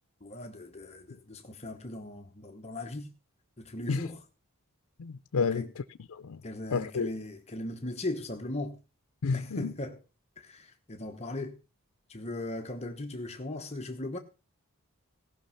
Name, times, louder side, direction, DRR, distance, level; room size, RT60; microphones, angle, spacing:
voice 1, 0.2-3.1 3.6-4.2 5.3-5.7 6.4-8.8 9.3-10.0 10.4-11.6 12.1-14.2, left 2 dB, 30° left, 1.0 m, -38 dB
voice 2, 5.0-5.7 6.1-6.4 6.7-7.1 9.2-9.7, left 5 dB, 80° left, 0.5 m, -30 dB
17.5 x 6.0 x 5.7 m
head